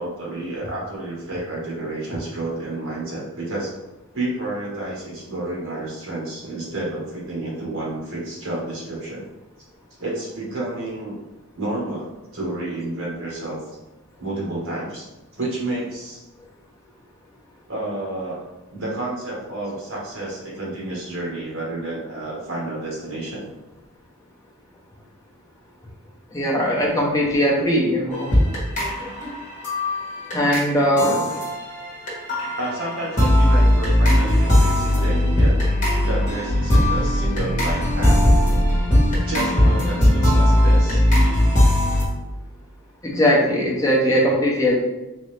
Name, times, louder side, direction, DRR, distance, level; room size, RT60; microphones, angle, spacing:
voice 1, 0.0-3.7 4.1-9.2 10.0-11.2 11.5-13.6 14.2-15.1 15.3-16.2 17.7-18.4 18.7-23.5 30.9-31.4 32.6-35.6 36.0-38.2 39.3-41.0, right 2 dB, 60° right, -4 dB, 1.5 m, -30 dB
voice 2, 26.3-28.3 30.3-31.2 43.0-44.8, equal, 15° left, -3 dB, 0.8 m, -19 dB
sound 1, 28.1-42.0, left 1 dB, 35° left, 1.4 m, -19 dB
3.9 x 2.9 x 3.3 m, 1.0 s
head